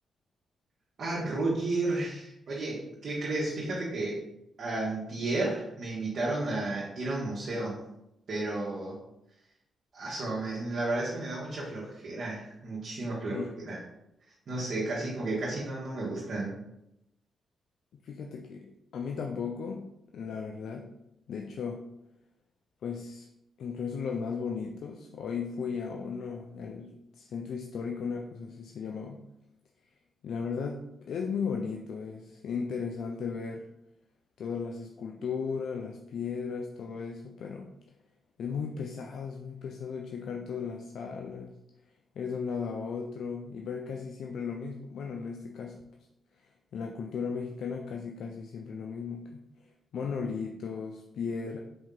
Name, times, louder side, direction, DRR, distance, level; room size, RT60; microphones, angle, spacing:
voice 1, 1.0-4.2 4.6-7.8 8.3-9.0 9.9-13.8 14.5-16.5, right 2 dB, 65° right, -6 dB, 1.2 m, -32 dB
voice 2, 18.0-20.9 21.3-21.9 22.8-23.3 23.6-29.2 30.2-33.6 34.4-37.7 38.4-41.6 42.2-45.8 46.7-51.6, left 5 dB, 75° left, 2 dB, 0.3 m, -36 dB
4.5 x 2.7 x 3.7 m, 0.85 s
cardioid pair, 65°, 0 cm